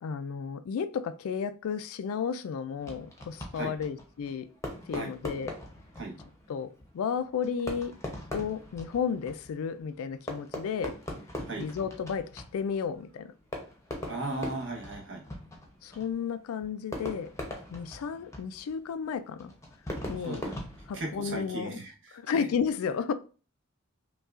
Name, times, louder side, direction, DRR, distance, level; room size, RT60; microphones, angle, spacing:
voice 1, 0.0-4.5 4.9-5.5 6.5-7.9 8.3-10.9 11.6-13.3 15.8-17.3 17.7-19.5 20.1-20.4 20.9-21.8 22.1-23.1, left 6 dB, 80° left, 0.3 m, -33 dB
Fireworks, 2.8-21.6, left 1 dB, 15° left, 0.7 m, -42 dB
voice 2, 14.0-15.2 20.2-20.6 20.9-22.5, right 2 dB, 60° right, 1.1 m, -37 dB
5.3 x 2.3 x 2.4 m
head